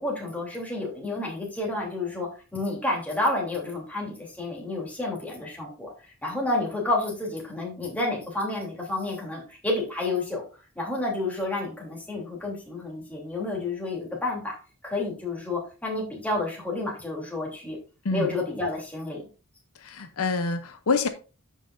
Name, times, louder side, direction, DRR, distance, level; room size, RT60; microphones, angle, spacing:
voice 1, 0.0-5.9 6.2-10.4 10.7-14.5 14.8-17.8 18.1-19.3, left 2 dB, 5° left, 3.2 m, -30 dB
voice 2, 19.8-21.1, left 4 dB, 75° left, 0.7 m, -26 dB
13.0 x 5.5 x 2.6 m
head